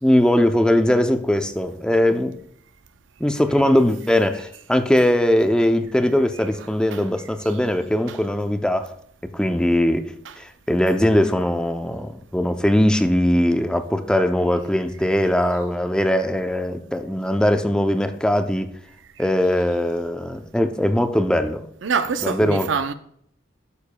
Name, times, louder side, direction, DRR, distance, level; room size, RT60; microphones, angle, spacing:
voice 1, 0.0-2.3 3.2-8.9 9.3-10.1 10.4-18.7 19.2-21.6 22.2-22.7, left 1 dB, 5° left, 0.5 m, -20 dB
voice 2, 6.3-7.0 7.5-7.6 8.1-8.2 10.2-10.4 19.2-19.3 21.8-22.9, right 5 dB, 75° right, 0.5 m, -27 dB
12.0 x 6.7 x 2.2 m
head